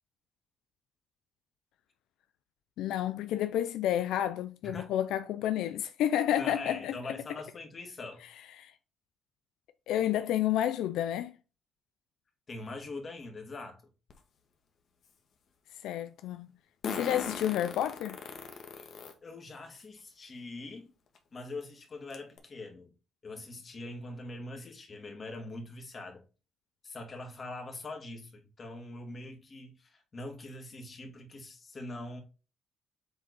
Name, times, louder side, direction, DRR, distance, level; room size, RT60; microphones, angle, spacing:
voice 1, 2.8-6.9 8.6-8.7 9.9-11.3 15.8-16.5 16.9-18.2, left 11 dB, 90° left, 0.4 m, -30 dB
voice 2, 6.4-8.2 12.5-13.8 18.5-18.9 19.2-20.9 21.3-22.9 23.2-26.2 26.8-32.2, left 2 dB, 40° left, 2.4 m, -43 dB
Fart, 14.1-14.2 16.8-19.1 19.8-19.9 21.1-21.2 21.6-21.7 22.1-22.4, left 5 dB, 65° left, 1.5 m, -38 dB
7.9 x 3.9 x 4.1 m
cardioid pair, 90°, 0 cm